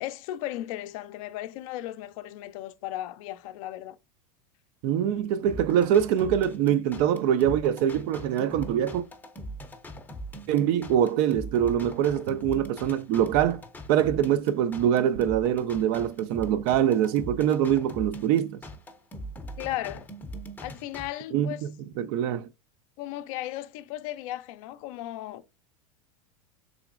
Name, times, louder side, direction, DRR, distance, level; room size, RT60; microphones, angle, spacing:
voice 1, 0.0-4.0 19.6-20.1 20.6-21.7 23.0-25.5, left 14 dB, 65° left, 0.4 m, -36 dB
voice 2, 4.8-9.1 10.5-13.6 13.9-18.6 21.3-21.7 22.0-22.5, right 10 dB, 55° right, 0.4 m, -24 dB
sound 1, 5.5-21.1, right 1 dB, 10° left, 0.6 m, -41 dB
3.7 x 3.0 x 2.4 m
supercardioid pair, 125°, 19 cm